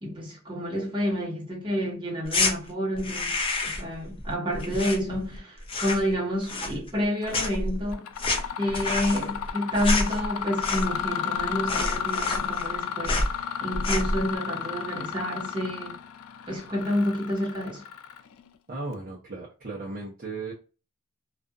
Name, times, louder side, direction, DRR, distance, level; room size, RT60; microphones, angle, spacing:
voice 1, 0.0-3.3 3.6-8.1 8.6-13.3 13.6-16.0 16.5-17.8, equal, 25° right, 1.4 m, -29 dB
sound 1, 2.2-2.5 3.0-3.9 4.2-5.4 5.6-6.1 6.4-7.1 7.3-11.1 11.4-11.5 11.7-12.8 13.0-13.3 13.7-14.2, left 2 dB, 25° left, 0.6 m, -28 dB
Mechanisms, 7.2-7.6 7.9-18.5, left 8 dB, 85° left, 0.4 m, -33 dB
voice 2, 18.7-20.5, right 3 dB, 45° right, 0.7 m, -36 dB
2.5 x 2.5 x 2.3 m
head